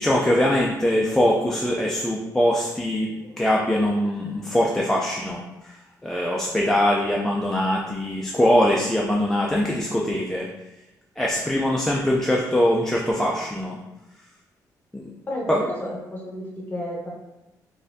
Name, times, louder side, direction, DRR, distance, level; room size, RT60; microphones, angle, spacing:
voice 1, 0.0-10.5 11.2-13.8 14.9-15.1 15.5-15.6, left 1 dB, 5° left, -4 dB, 0.3 m, -22 dB
voice 2, 15.3-17.1, left 1 dB, 25° left, -3 dB, 0.9 m, -31 dB
4.0 x 2.5 x 2.6 m, 0.98 s
cardioid pair, 130°, 7 cm